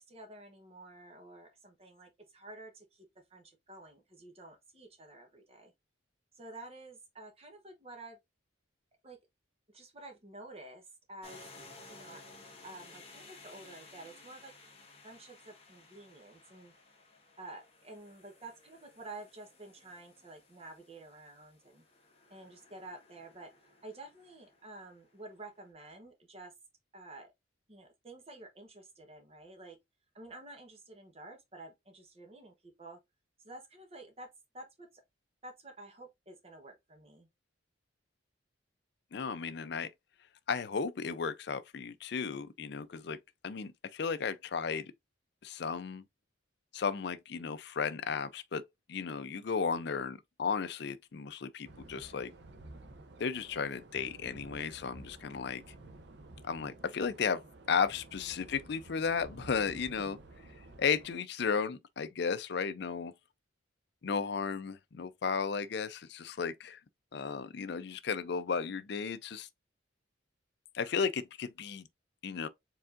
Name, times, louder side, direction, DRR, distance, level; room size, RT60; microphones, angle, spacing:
voice 1, 0.0-5.7 6.3-8.2 9.0-9.2 9.7-11.4 11.9-12.2 12.6-14.5 15.0-16.7 17.4-21.8 22.3-26.5 26.9-27.3 27.7-29.8 30.1-33.0 33.4-34.3 34.5-35.0 35.4-37.3, right 2 dB, 30° right, 1.0 m, -50 dB
sound 1, 11.2-25.3, left 3 dB, 30° left, 1.5 m, -57 dB
voice 2, 39.1-39.9 40.5-44.9 45.4-46.0 46.7-52.3 53.2-55.6 56.4-60.2 60.8-63.1 64.0-66.8 67.1-69.5 70.7-71.9 72.2-72.5, left 5 dB, 55° left, 0.4 m, -34 dB
sound 2, 51.6-61.1, right 2 dB, 55° right, 0.7 m, -52 dB
4.6 x 3.6 x 2.5 m
head